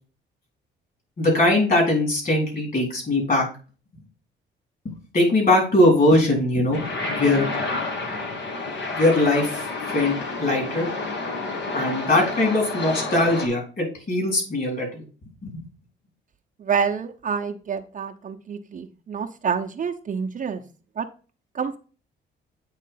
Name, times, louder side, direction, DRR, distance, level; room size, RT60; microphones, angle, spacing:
voice 1, 1.2-3.4 5.1-7.5 8.9-9.6 9.9-10.9 11.7-15.0 15.4-15.6, left 1 dB, 45° left, 0 dB, 4.5 m, -21 dB
sound 1, 6.7-13.5, left 3 dB, 65° left, 1.8 m, -30 dB
voice 2, 16.6-20.6 21.0-21.1 21.5-21.8, right 6 dB, 40° right, 3 dB, 0.8 m, -27 dB
8.4 x 3.2 x 5.6 m, 0.37 s
cardioid pair, 90°, 20 cm